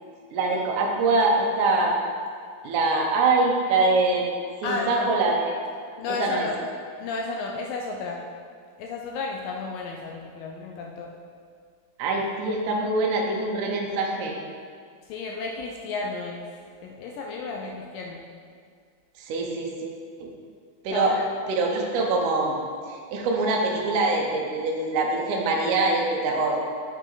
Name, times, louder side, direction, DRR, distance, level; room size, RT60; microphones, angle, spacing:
voice 1, 0.3-2.0 2.6-4.3 4.6-5.5 6.1-6.5 12.0-14.4 19.2-20.3 20.8-21.2 21.5-22.6 22.9-26.6, right 3 dB, 70° right, 0 dB, 2.0 m, -24 dB
voice 2, 4.6-5.1 6.0-6.6 7.0-8.2 8.8-11.1 15.1-16.5 16.8-18.2 20.9-21.2, left 3 dB, 80° left, 0 dB, 2.0 m, -32 dB
7.2 x 5.5 x 4.0 m, 2.1 s
omnidirectional pair, 4.4 m